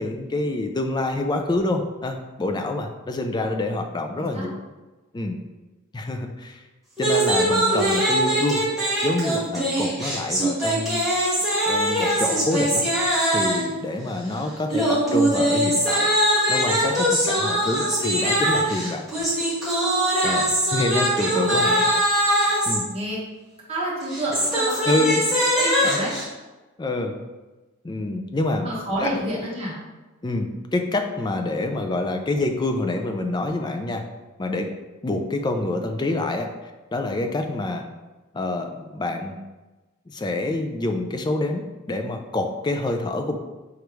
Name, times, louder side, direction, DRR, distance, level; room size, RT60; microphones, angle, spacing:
voice 1, 0.0-4.5 5.1-5.4 5.9-6.6 7.0-8.6 9.0-11.0 11.7-12.9 13.3-16.1 16.5-19.0 20.2-21.7 22.7-22.9 24.8-25.2 26.8-27.2 27.8-28.7 29.0-29.1 30.2-34.0 34.4-34.7 35.0-36.5 36.9-37.8 38.3-39.3 40.1-43.4, left 2 dB, 20° left, 5 dB, 0.3 m, -26 dB
voice 2, 4.2-4.5 21.4-21.9 22.9-23.2 23.7-24.7 25.6-26.2 28.6-29.7, right 1 dB, 30° right, -6 dB, 1.3 m, -29 dB
sound 1, 7.0-13.7 14.7-22.8 24.0-26.2, right 1 dB, ahead, 1.5 m, -22 dB
4.9 x 3.4 x 3.1 m, 1.2 s
head